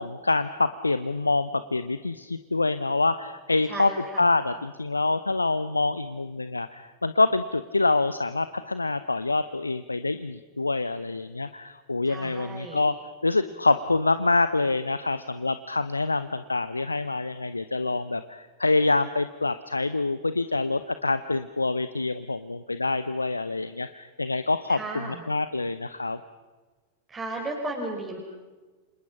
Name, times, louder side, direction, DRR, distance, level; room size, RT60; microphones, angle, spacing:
voice 1, 0.0-3.9 4.2-13.0 13.2-26.2, left 3 dB, 80° left, 13 dB, 0.8 m, -26 dB
voice 2, 3.7-4.2 12.1-12.8 24.7-25.2 27.1-28.2, right 2 dB, 20° right, 0 dB, 4.3 m, -34 dB
29.5 x 26.5 x 5.8 m, 1.3 s
figure-of-eight pair, 90°, 0 cm